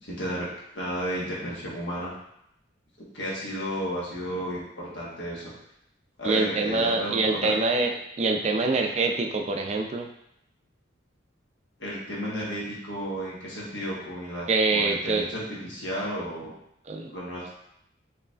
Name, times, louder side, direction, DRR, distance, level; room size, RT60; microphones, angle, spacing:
voice 1, 0.0-2.1 3.1-5.5 6.2-7.6 11.8-16.5 17.1-17.5, equal, 65° left, -5 dB, 1.3 m, -33 dB
voice 2, 6.2-7.9 8.2-10.1 14.5-15.3 16.9-17.1, right 3 dB, 35° right, 3 dB, 0.4 m, -25 dB
4.7 x 3.1 x 2.4 m, 0.75 s
head